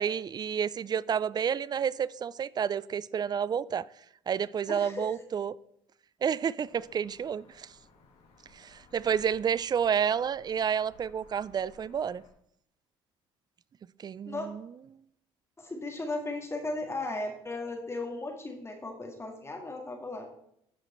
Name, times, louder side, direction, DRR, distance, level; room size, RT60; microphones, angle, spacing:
voice 1, 0.0-3.9 4.3-5.5 6.2-7.7 8.5-12.2 14.0-14.7, right 7 dB, 35° right, 0.4 m, -30 dB
voice 2, 4.7-5.2 14.3-14.5 15.6-20.3, left 2 dB, 20° left, 1.8 m, -36 dB
sound 1, 6.7-12.3, left 2 dB, 60° left, 2.0 m, -59 dB
12.0 x 5.1 x 4.2 m
supercardioid pair, 70°, 12 cm